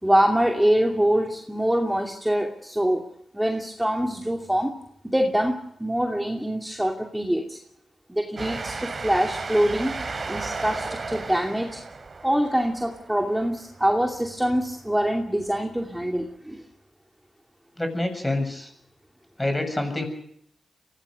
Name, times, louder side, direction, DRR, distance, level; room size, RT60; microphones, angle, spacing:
voice 1, 0.0-3.0 3.3-4.7 5.1-7.6 8.1-9.9 10.3-11.8 12.2-16.6, equal, 5° right, 2 dB, 2.7 m, -24 dB
Train, 8.4-14.5, right 4 dB, 45° right, 3.0 m, -34 dB
voice 2, 17.8-18.7 19.4-20.1, left 1 dB, 15° left, 6 dB, 7.3 m, -26 dB
24.0 x 18.0 x 6.5 m, 0.74 s
cardioid pair, 65°, 0 cm